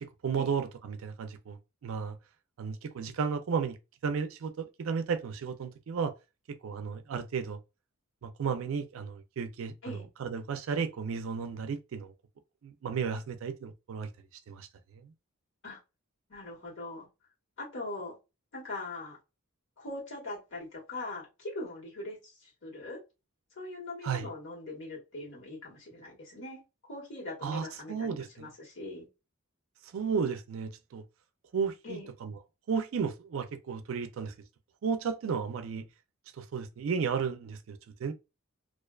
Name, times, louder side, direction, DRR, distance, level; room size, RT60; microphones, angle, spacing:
voice 1, 0.0-2.2 2.6-3.8 4.0-6.1 6.5-7.6 8.2-12.1 12.6-14.1 14.5-15.1 24.0-24.3 27.4-28.5 29.9-31.0 31.5-32.3 32.7-34.3 34.8-35.9 36.4-38.1, right 6 dB, 70° right, 0.4 m, -34 dB
voice 2, 16.3-17.1 17.6-18.2 18.5-19.2 19.8-23.0 23.5-26.6 26.9-29.1 31.8-32.1, left 2 dB, 65° left, 1.2 m, -41 dB
2.4 x 2.2 x 2.3 m
head